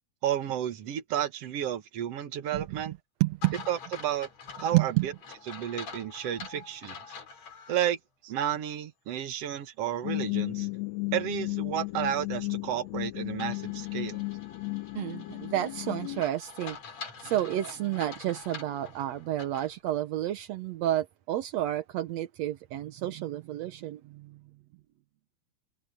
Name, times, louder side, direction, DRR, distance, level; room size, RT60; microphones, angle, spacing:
voice 1, 0.2-2.9 3.7-4.3 4.6-5.1 5.5-7.0 7.7-8.0 8.2-10.7 11.1-14.2, right 10 dB, 55° right, 2.0 m, -32 dB
voice 2, 3.2-3.6 4.7-5.1 14.9-16.8 17.2-24.4, right 14 dB, 70° right, 1.7 m, -30 dB
sound 1, 3.4-7.9 8.4-8.5 13.4-19.7, left 5 dB, 50° left, 4.3 m, -45 dB
sound 2, 10.0-16.2, left 24 dB, 90° left, 1.5 m, -34 dB
open air
omnidirectional pair, 4.0 m